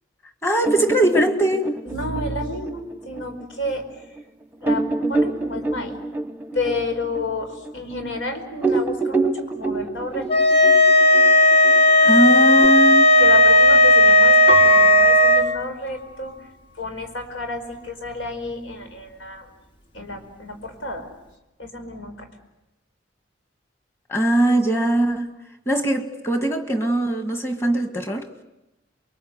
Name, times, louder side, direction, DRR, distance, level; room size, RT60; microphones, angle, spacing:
voice 1, 0.4-1.7 12.0-13.1 24.1-25.3 25.7-28.3, right 1 dB, 15° left, 1.8 m, -20 dB
sound 1, 0.6-3.7 4.2-4.3 4.6-8.2 8.5-12.7, right 3 dB, 10° right, 0.9 m, -26 dB
voice 2, 1.8-3.8 4.6-4.8 5.1-5.9 6.5-10.3 13.2-16.3 16.8-19.5 19.9-21.1 21.6-22.3, left 2 dB, 80° left, 5.0 m, -30 dB
sound 2, 10.3-15.5, left 2 dB, 30° left, 1.1 m, -14 dB
Piano, 14.5-16.5 17.0-17.1, right 1 dB, 60° left, 4.8 m, -28 dB
29.0 x 23.0 x 8.0 m
head